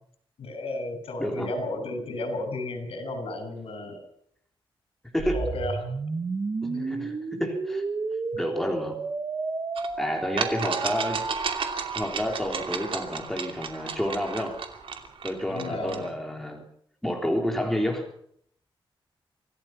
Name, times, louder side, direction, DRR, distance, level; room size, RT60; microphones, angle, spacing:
voice 1, 0.4-4.0 5.3-5.8 6.7-7.1 8.3-8.4 15.5-16.0, left 1 dB, 80° left, 7 dB, 7.0 m, -33 dB
sound 1, 5.2-12.0, right 4 dB, 35° right, 1.6 m, -32 dB
voice 2, 6.6-7.8 8.3-9.0 10.0-11.2 12.0-14.6 15.2-16.6 17.0-18.1, equal, 5° left, 2 dB, 3.6 m, -29 dB
sound 2, 9.8-9.9 10.4-16.1, right 6 dB, 70° right, 2.7 m, -33 dB
26.0 x 17.0 x 5.9 m, 0.65 s
wide cardioid pair, 165°, 9 cm